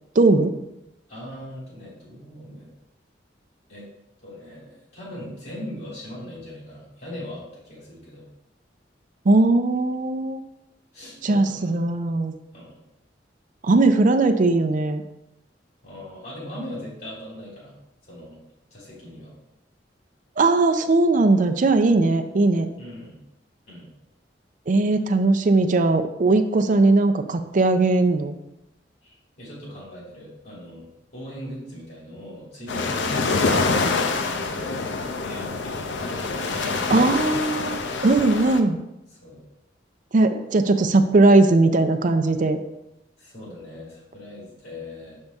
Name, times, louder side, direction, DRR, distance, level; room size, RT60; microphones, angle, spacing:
voice 1, 0.2-0.5 9.3-10.4 11.2-12.3 13.6-15.0 20.4-22.7 24.7-28.4 36.9-38.8 40.1-42.6, right 2 dB, 45° right, 7 dB, 0.5 m, -19 dB
voice 2, 1.1-2.7 3.7-3.9 4.2-8.2 10.9-11.8 12.5-12.8 15.8-18.4 18.7-19.3 22.8-23.2 23.7-23.9 29.0-34.9 35.2-36.0 39.2-39.4 43.2-45.2, left 1 dB, 65° left, -6 dB, 2.5 m, -40 dB
sound 1, 32.7-38.6, left 3 dB, 90° left, 0.6 m, -25 dB
6.7 x 5.4 x 3.5 m, 0.88 s
head